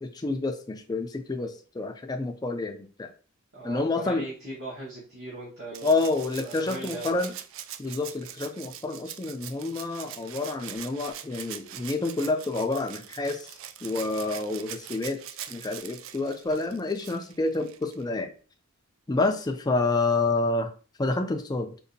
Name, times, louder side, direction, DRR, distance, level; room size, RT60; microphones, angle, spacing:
voice 1, 0.0-3.1 3.6-4.3 5.8-7.3 7.8-15.2 15.5-18.3 19.1-20.7 21.0-21.7, left 3 dB, 20° left, 6 dB, 0.4 m, -28 dB
voice 2, 3.5-6.1 6.4-7.2, right 1 dB, 50° right, -8 dB, 1.3 m, -39 dB
Rattle (instrument), 5.7-18.1 19.5-19.6, right 10 dB, 65° right, 0.3 m, -43 dB
3.8 x 2.5 x 2.6 m, 0.39 s
head